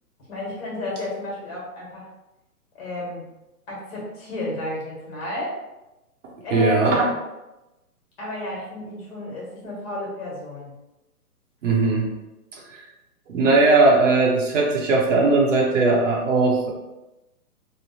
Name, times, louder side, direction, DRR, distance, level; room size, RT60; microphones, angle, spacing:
voice 1, 0.3-2.1 2.7-3.3 3.7-5.5 6.4-7.1 8.2-10.7, left 1 dB, 40° left, -4 dB, 1.3 m, -32 dB
voice 2, 6.5-7.1 11.6-12.1 12.5-12.9 13.3-16.7, right 3 dB, 55° right, -1 dB, 0.8 m, -19 dB
3.1 x 2.1 x 2.7 m, 0.99 s
hypercardioid pair, 140°, 46 cm